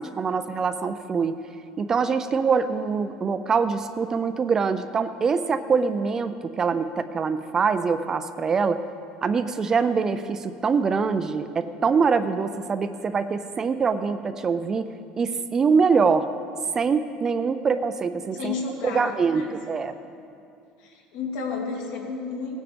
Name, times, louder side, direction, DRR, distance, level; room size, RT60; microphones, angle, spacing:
voice 1, 0.0-1.4 1.8-8.8 9.2-14.8 15.2-16.3 16.7-18.5 18.8-19.9, right 5 dB, 20° right, 11 dB, 0.4 m, -24 dB
voice 2, 18.3-19.6 20.8-22.6, left 4 dB, 70° left, 0 dB, 2.5 m, -32 dB
17.5 x 9.4 x 5.1 m, 2.6 s
cardioid pair, 165°, 3 cm